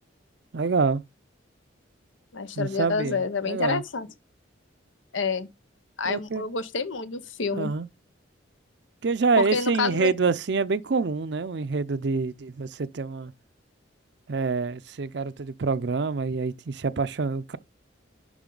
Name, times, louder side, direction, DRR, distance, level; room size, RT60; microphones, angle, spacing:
voice 1, 0.5-1.0 2.6-3.2 3.5-3.8 6.0-6.5 7.5-7.9 9.0-13.3 14.3-17.6, right 4 dB, 60° right, 0.5 m, -26 dB
voice 2, 2.3-4.1 5.1-5.5 6.0-7.7 9.4-10.1, left 4 dB, 75° left, 0.7 m, -28 dB
11.0 x 3.7 x 3.9 m
head